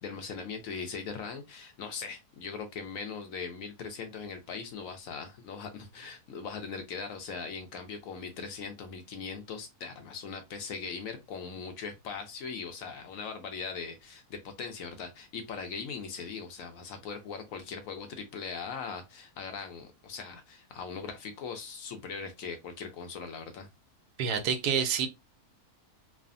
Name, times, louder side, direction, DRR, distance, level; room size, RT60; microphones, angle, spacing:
voice 1, 0.0-23.7, left 5 dB, 65° left, 0.9 m, -40 dB
voice 2, 24.2-25.1, right 7 dB, 85° right, 1.1 m, -27 dB
3.2 x 2.0 x 2.5 m
omnidirectional pair, 1.7 m